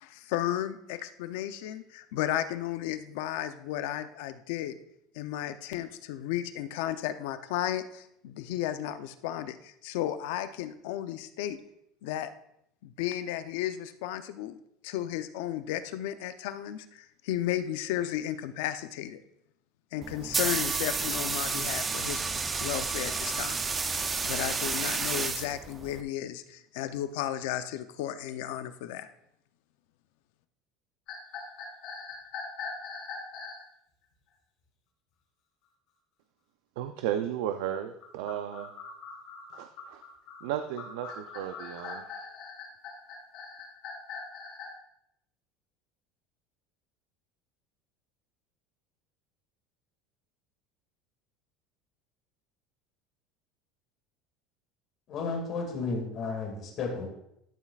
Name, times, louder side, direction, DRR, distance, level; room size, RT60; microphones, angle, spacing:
voice 1, 0.0-4.8 5.1-11.6 12.0-12.3 12.8-19.2 19.9-22.2 22.6-23.6 24.2-29.1, left 12 dB, 75° left, 11 dB, 0.6 m, -34 dB
sound 1, 20.0-26.0, right 4 dB, 15° right, 0.5 m, -31 dB
sound 2, 31.1-33.6 38.0-44.7, left 5 dB, 55° left, 2.9 m, -41 dB
voice 2, 36.8-38.7 39.5-40.0 40.4-42.1, right 10 dB, 80° right, 8 dB, 0.5 m, -34 dB
voice 3, 55.1-57.1, left 4 dB, 35° left, 1 dB, 2.1 m, -33 dB
12.5 x 7.3 x 2.4 m, 0.77 s
cardioid pair, 160°, 0 cm